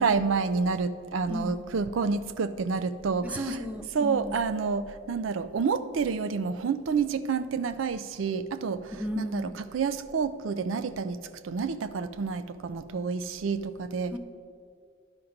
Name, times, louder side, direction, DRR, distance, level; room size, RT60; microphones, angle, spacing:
voice 1, 0.0-3.6 3.9-14.1, right 5 dB, 85° right, 13 dB, 0.4 m, -29 dB
voice 2, 3.2-4.4 8.9-9.6 14.1-14.2, equal, 10° right, 7 dB, 0.5 m, -34 dB
10.5 x 5.9 x 5.1 m, 2.1 s
head